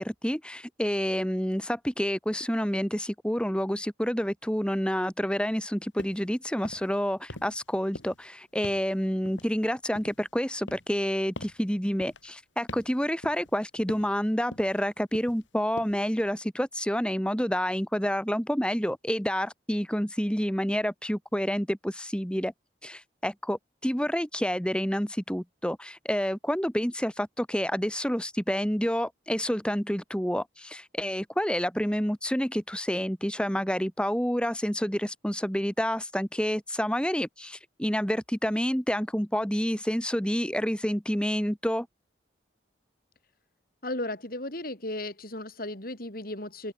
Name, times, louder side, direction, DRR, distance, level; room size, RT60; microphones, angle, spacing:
voice 1, 0.0-22.5 22.8-41.9, equal, 5° left, 2.5 m, -28 dB
sound 1, 6.0-6.3 6.6-7.0 7.3-7.7 8.0-8.3 8.6-8.9 9.3-10.3 10.7-11.0 11.4-11.6 12.0-12.3 12.7-13.0 13.2-13.6 13.9-14.2 14.5-14.9 15.1-15.5 15.8-16.1, left 1 dB, 80° left, 6.7 m, -43 dB
voice 2, 43.8-46.7, left 1 dB, 50° left, 3.9 m, -35 dB
open air
head